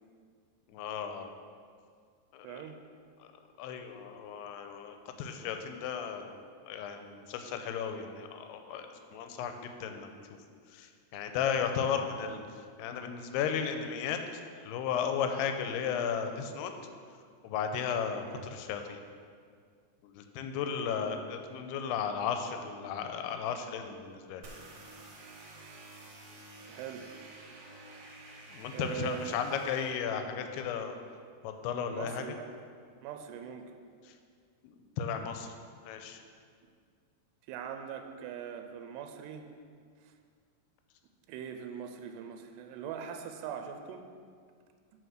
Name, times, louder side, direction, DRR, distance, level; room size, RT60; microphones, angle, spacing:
voice 1, 0.7-1.3 2.3-2.6 3.6-6.4 6.7-8.9 9.1-9.5 9.8-10.1 10.8-10.9 11.1-12.4 12.8-14.2 14.6-16.7 17.4-19.0 20.1-24.4 28.5-31.0 31.4-32.2 35.0-35.5 35.8-36.2, left 7 dB, 85° left, 6 dB, 2.6 m, -34 dB
voice 2, 2.4-2.8 18.2-18.5 20.6-21.1 26.7-27.2 28.7-29.5 31.9-32.5 33.0-33.7 37.5-39.5 40.0-40.1 41.3-44.1, right 8 dB, 90° right, 6 dB, 2.7 m, -41 dB
sound 1, 24.4-29.9, right 2 dB, 65° right, 1.7 m, -50 dB
7.8 x 5.2 x 6.3 m, 2.1 s
omnidirectional pair, 4.7 m